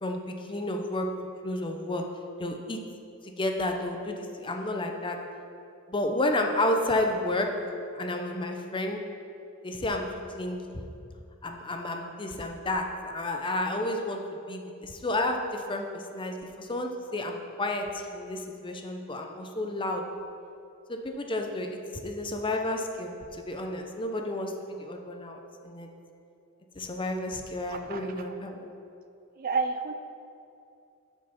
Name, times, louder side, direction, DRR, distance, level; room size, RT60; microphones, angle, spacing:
voice 1, 0.0-1.1 1.4-2.0 2.4-2.8 3.2-5.2 5.9-7.5 7.9-9.0 9.6-10.1 10.3-10.7 11.4-14.2 14.5-20.1 20.9-25.9 26.7-28.7, left 1 dB, 20° left, 4 dB, 0.6 m, -31 dB
voice 2, 27.7-28.1 29.4-29.9, right 4 dB, 40° right, 7 dB, 0.4 m, -30 dB
7.5 x 6.6 x 5.7 m, 2.6 s
head